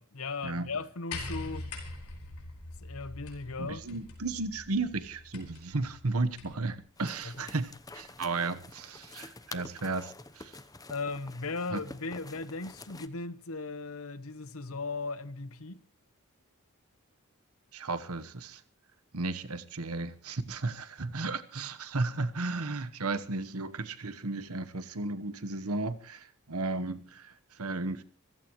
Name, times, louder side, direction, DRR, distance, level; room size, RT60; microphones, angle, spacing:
voice 1, 0.0-1.7 2.8-4.0 7.2-7.5 10.9-15.8, left 3 dB, 70° left, 1.1 m, -37 dB
sound 1, 1.1-6.7 7.8-7.9, left 2 dB, 85° left, 5.1 m, -43 dB
voice 2, 3.6-10.6 11.7-11.8 17.7-18.6 19.1-28.0, right 3 dB, 80° right, 1.2 m, -34 dB
sound 2, 7.0-13.1, left 3 dB, 15° left, 0.9 m, -48 dB
26.0 x 15.5 x 3.1 m
head